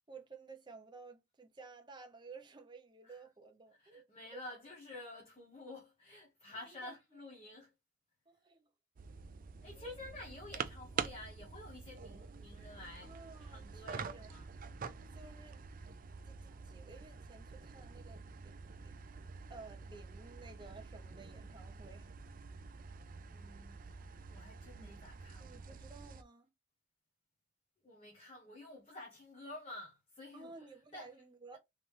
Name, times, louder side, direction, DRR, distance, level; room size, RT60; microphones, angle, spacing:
voice 1, 0.1-4.1 4.3-4.4 6.5-7.4 8.3-8.7 9.7-10.3 13.0-14.3 15.1-15.6 16.3-18.9 19.5-22.1 24.8-25.1 25.4-26.5 30.3-31.6, right 4 dB, 20° right, 0.8 m, -55 dB
voice 2, 3.8-7.7 9.6-14.5 23.2-23.8 24.3-25.6 27.8-31.1, left 2 dB, 30° left, 1.3 m, -51 dB
sound 1, 9.0-26.2, right 5 dB, 45° right, 0.4 m, -47 dB
3.9 x 3.3 x 3.3 m
head